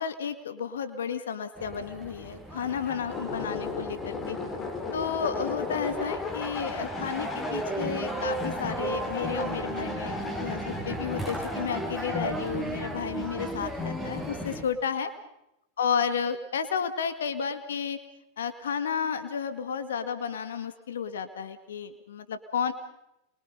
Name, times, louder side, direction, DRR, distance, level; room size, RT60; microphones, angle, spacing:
voice 1, 0.0-4.4 4.9-15.1 15.8-18.0 18.4-22.7, left 7 dB, 80° left, 10 dB, 2.0 m, -32 dB
sound 1, 1.6-14.6, right 1 dB, 10° left, 7.8 m, -35 dB
sound 2, 3.1-12.3, left 3 dB, 30° left, 4.5 m, -36 dB
28.0 x 24.0 x 5.4 m, 0.85 s
hypercardioid pair, 95°, 0 cm